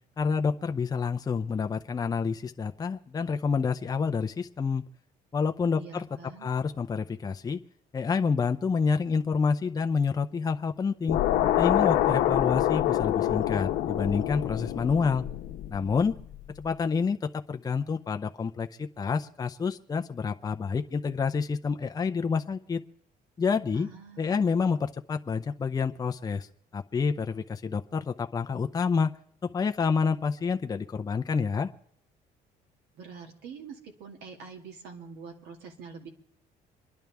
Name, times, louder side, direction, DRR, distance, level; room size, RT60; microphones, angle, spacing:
voice 1, 0.2-4.8 5.3-6.0 6.4-7.6 7.9-11.2 11.6-15.2 15.7-16.1 16.6-22.8 23.4-23.9 24.2-26.5 26.7-29.1 29.4-31.7, left 5 dB, 20° left, 6 dB, 0.6 m, -28 dB
voice 2, 5.8-6.5 23.7-24.5 32.9-36.1, right 5 dB, 80° right, 3 dB, 2.3 m, -45 dB
sound 1, 11.1-16.4, left 12 dB, 85° left, 0.9 m, -26 dB
27.0 x 10.5 x 3.5 m, 0.72 s
cardioid pair, 110°, 17 cm